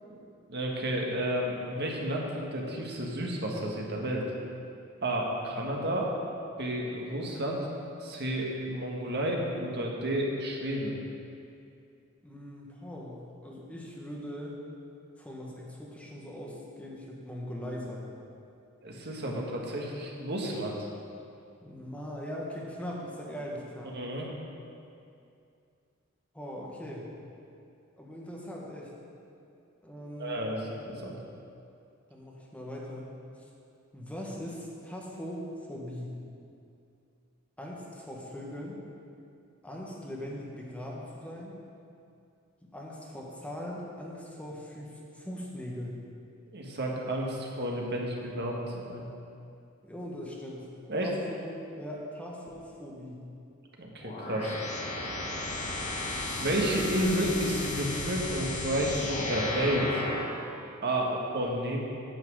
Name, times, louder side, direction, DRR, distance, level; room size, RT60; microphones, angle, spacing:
voice 1, 0.5-4.2 5.0-6.1 6.6-7.6 8.0-10.9 18.8-20.8 23.9-24.3 30.2-31.1 46.5-49.1 50.9-51.1 53.8-54.6 56.4-60.1 60.8-61.8, right 1 dB, 50° right, -1 dB, 1.6 m, -31 dB
voice 2, 12.2-14.5 15.2-18.1 19.2-19.4 21.6-24.0 26.3-27.0 28.0-28.9 29.8-30.6 32.1-33.1 33.9-36.1 37.6-38.8 39.6-41.5 42.7-45.9 49.8-50.7 51.0-53.2 61.0-61.2, equal, 5° left, -3 dB, 1.5 m, -40 dB
sound 1, 54.0-60.5, left 2 dB, 35° left, 1.2 m, -34 dB
9.2 x 5.9 x 7.7 m, 2.5 s
head